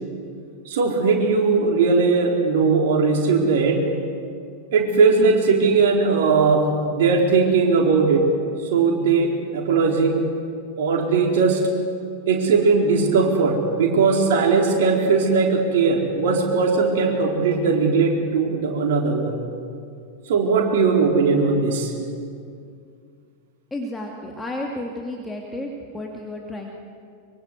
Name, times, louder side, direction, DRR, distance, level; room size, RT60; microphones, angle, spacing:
voice 1, 0.7-3.8 4.7-8.3 8.7-10.2 10.8-11.6 12.3-19.3 20.3-21.9, right 4 dB, 55° right, 1 dB, 4.4 m, -19 dB
voice 2, 23.7-26.7, left 1 dB, 10° left, -1 dB, 2.5 m, -32 dB
24.0 x 24.0 x 8.1 m, 2.3 s
figure-of-eight pair, 90°, 0 cm